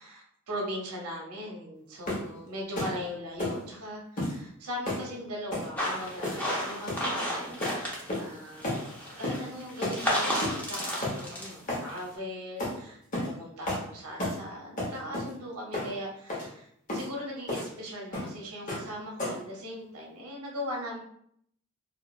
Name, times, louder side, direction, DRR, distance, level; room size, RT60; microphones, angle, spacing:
voice 1, 0.0-8.9 9.2-21.0, equal, 80° right, -1 dB, 0.7 m, -39 dB
sound 1, 2.1-2.3 2.8-3.0 3.4-3.6 4.2-4.4 4.9-5.1 5.5-5.7 6.2-6.5 6.9-7.1 7.6-7.8 8.1-8.4 8.6-8.8 9.2-9.4 9.8-10.0 10.4-10.6 11.0-11.2 11.7-11.9 12.6-12.8 13.1-13.3 13.7-13.9 14.2-14.4 14.8-15.3 15.7-15.9 16.3-16.5 16.9-17.1 17.5-17.7 18.1-18.3 18.7-18.9 19.2-19.5, left 1 dB, 40° left, 0.8 m, -32 dB
sound 2, 5.8-8.3 8.5-12.1, equal, 10° left, 0.6 m, -33 dB
2.9 x 2.3 x 2.3 m, 0.69 s
head